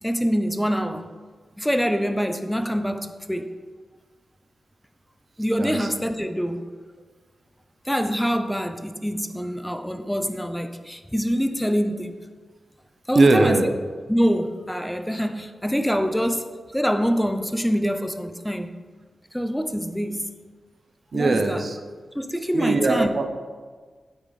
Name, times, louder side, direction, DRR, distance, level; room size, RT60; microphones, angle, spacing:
voice 1, 0.0-1.0 1.6-3.5 5.4-6.7 7.9-12.2 13.1-13.7 14.1-18.7 19.3-20.2 21.1-21.6 22.1-23.1, equal, 5° left, 8 dB, 0.6 m, -25 dB
voice 2, 5.6-5.9 13.1-13.7 21.1-21.8 22.5-23.3, right 3 dB, 55° right, 6 dB, 0.9 m, -20 dB
8.7 x 8.2 x 4.1 m, 1.5 s
wide cardioid pair, 120°, 0 cm